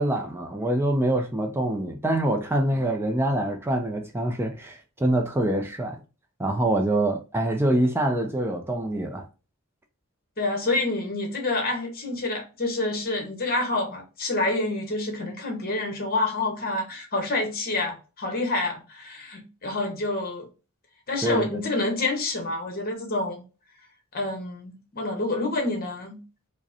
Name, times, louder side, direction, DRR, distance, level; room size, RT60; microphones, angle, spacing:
voice 1, 0.0-6.0 6.4-9.3 21.2-21.5, right 1 dB, 10° right, 0.4 m, -25 dB
voice 2, 10.4-20.4 21.1-23.4 24.1-26.2, left 2 dB, 45° left, 1.1 m, -28 dB
4.8 x 2.1 x 2.8 m
head